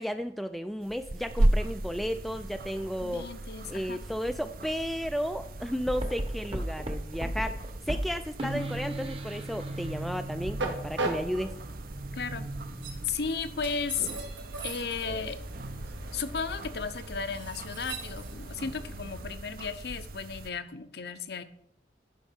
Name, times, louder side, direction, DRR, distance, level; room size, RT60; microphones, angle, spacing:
voice 1, 0.0-3.3 3.7-7.6 7.9-11.6, equal, ahead, 9 dB, 0.3 m, -33 dB
sound 1, 0.8-20.5, right 1 dB, 50° right, 0.6 m, -36 dB
Train, 2.6-19.4, right 3 dB, 85° right, 1.7 m, -42 dB
voice 2, 3.0-4.0 8.4-8.7 12.1-12.5 13.0-14.1 14.6-15.4 16.1-21.4, left 5 dB, 60° left, 11 dB, 0.7 m, -34 dB
sound 2, 5.8-13.6, right 1 dB, 30° right, 0.9 m, -37 dB
10.5 x 5.3 x 5.8 m, 0.71 s
head